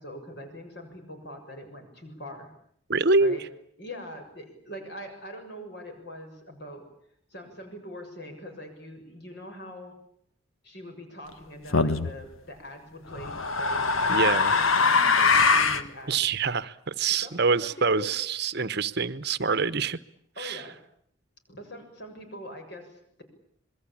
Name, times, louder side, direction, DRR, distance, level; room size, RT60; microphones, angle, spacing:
voice 1, 0.0-2.5 3.2-3.4 3.8-6.8 7.3-10.0 10.6-16.2 17.2-18.1 20.4-20.8 21.5-23.2, left 1 dB, 55° left, 5 dB, 7.0 m, -43 dB
voice 2, 2.9-3.4 14.1-14.5 16.1-20.0 20.4-20.6, right 4 dB, 55° right, 15 dB, 1.0 m, -25 dB
sound 1, 11.7-12.1 13.1-15.9, left 4 dB, 85° left, 1.5 m, -22 dB
27.0 x 22.0 x 8.7 m, 0.69 s
head